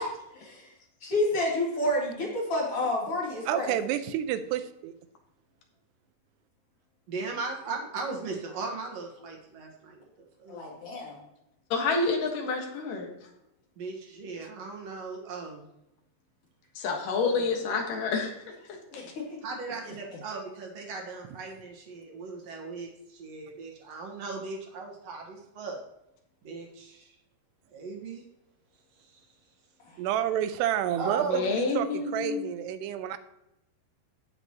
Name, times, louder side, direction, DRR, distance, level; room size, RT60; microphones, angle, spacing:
voice 1, 1.0-3.8 10.5-11.2 18.9-19.4 29.8-30.0, left 1 dB, 40° left, -5 dB, 3.6 m, -29 dB
voice 2, 3.5-4.9 30.0-33.2, right 10 dB, 85° right, 11 dB, 2.8 m, -29 dB
voice 3, 7.1-10.0 10.4-10.6 13.8-15.7 17.1-17.4 19.4-25.8 26.4-27.1 27.7-28.2 30.9-31.4 31.8-31.9, right 4 dB, 60° right, 1 dB, 1.8 m, -37 dB
voice 4, 11.7-13.1 16.8-18.3 31.2-32.4, left 4 dB, 60° left, 2 dB, 2.8 m, -28 dB
17.5 x 6.0 x 2.9 m, 0.85 s
omnidirectional pair, 4.7 m